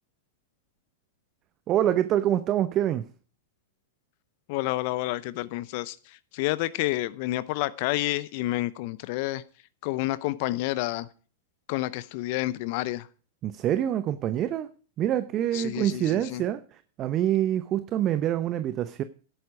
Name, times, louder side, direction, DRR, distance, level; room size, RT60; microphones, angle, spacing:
voice 1, 1.7-3.0 13.4-14.7 15.0-16.6 17.0-19.0, right 11 dB, 35° right, 0.8 m, -25 dB
voice 2, 4.5-9.4 9.8-11.1 11.7-13.1 15.5-16.4, left 17 dB, 50° left, 0.6 m, -29 dB
13.0 x 10.5 x 4.8 m
hypercardioid pair, 100°, 0 cm